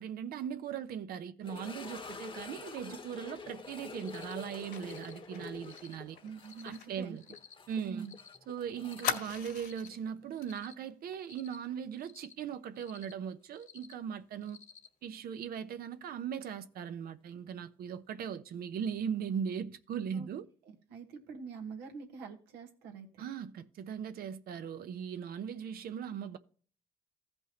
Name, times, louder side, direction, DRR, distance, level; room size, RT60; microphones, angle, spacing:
voice 1, 0.0-6.2 6.6-7.2 7.7-8.1 8.5-14.6 15.0-20.5 23.2-26.4, right 8 dB, 65° right, 0.9 m, -39 dB
sound 1, 1.4-10.4 10.6-10.7 11.3-11.4 14.0-14.1, left 4 dB, 30° left, 1.2 m, -47 dB
Cricket, 3.9-4.3 4.8-5.1 5.6-5.9 6.4-6.8 7.2-7.5 8.0-8.4 8.8-9.2 9.6-10.0 10.4-10.7 11.2-11.6 12.0-12.3 12.7-13.1 13.5-13.9 14.4-14.9, left 6 dB, 50° left, 1.2 m, -55 dB
Fire, 4.7-8.2 8.4-8.5 9.0-10.0 10.4-10.6 10.9-11.1, left 8 dB, 75° left, 2.4 m, -40 dB
voice 2, 6.2-7.2 7.8-8.1 20.1-20.3 20.6-23.2, right 5 dB, 85° right, 1.6 m, -45 dB
15.5 x 5.4 x 2.9 m
supercardioid pair, 60°, 16 cm